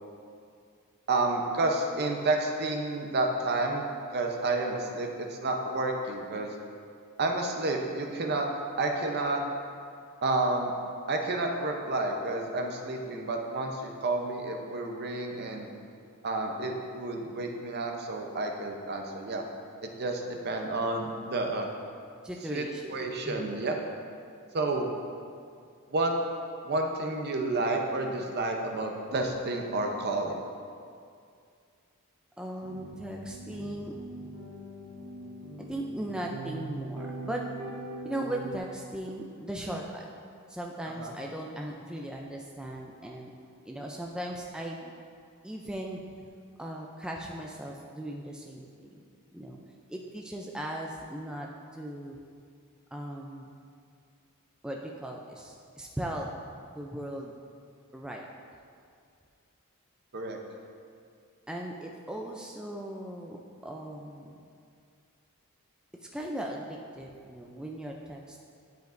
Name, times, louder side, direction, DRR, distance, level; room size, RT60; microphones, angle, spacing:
voice 1, 1.1-3.8 4.1-6.6 7.2-8.5 8.8-9.4 10.2-10.7 11.1-15.7 16.2-19.4 20.0-21.7 22.5-23.8 24.5-24.9 25.9-26.1 26.6-30.4 41.0-41.1 60.1-60.4, right 2 dB, 50° right, 3 dB, 0.7 m, -30 dB
voice 2, 22.2-23.5 32.4-33.9 35.6-37.5 38.0-40.1 40.5-43.3 43.7-44.9 45.4-46.0 46.6-49.0 49.3-49.6 49.9-52.2 52.9-53.5 54.6-56.3 56.8-57.3 57.9-58.3 61.5-64.4 66.1-68.4, right 1 dB, 5° right, -1 dB, 0.3 m, -38 dB
sound 1, 32.6-38.6, right 1 dB, 75° right, 0.9 m, -41 dB
10.5 x 5.1 x 2.5 m, 2.3 s
head